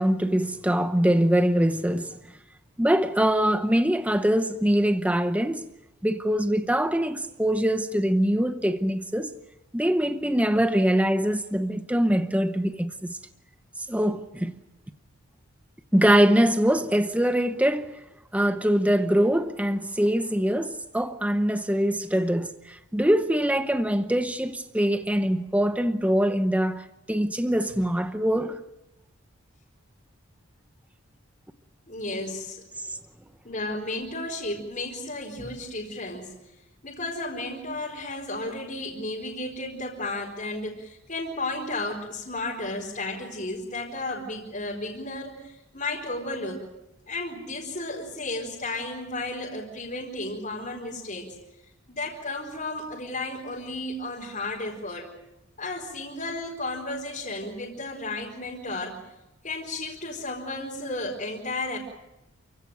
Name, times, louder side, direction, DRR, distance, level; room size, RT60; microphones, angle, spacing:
voice 1, 0.0-2.2 2.8-5.7 6.0-9.3 9.7-13.2 13.9-14.5 15.9-18.0 18.3-28.6 32.8-32.9, equal, 5° right, 0.8 m, -23 dB
voice 2, 31.9-32.6 33.4-36.3 36.8-46.6 47.1-51.4 51.9-55.1 55.6-59.0 59.4-61.8, left 2 dB, 35° left, 4.4 m, -33 dB
29.0 x 16.5 x 9.3 m
head